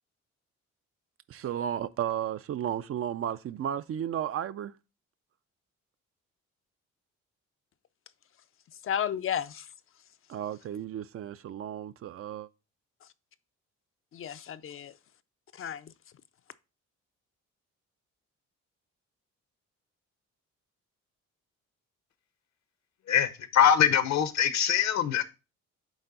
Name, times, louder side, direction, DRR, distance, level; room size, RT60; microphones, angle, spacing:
voice 1, 1.3-4.7 10.3-12.5, right 10 dB, 50° right, 0.4 m, -33 dB
voice 2, 8.7-9.7 13.0-13.1 14.1-15.0 15.5-15.9, left 9 dB, 45° left, 0.5 m, -33 dB
voice 3, 23.1-25.2, left 9 dB, 65° left, 0.9 m, -23 dB
8.9 x 3.4 x 3.8 m
cardioid pair, 90°, 30 cm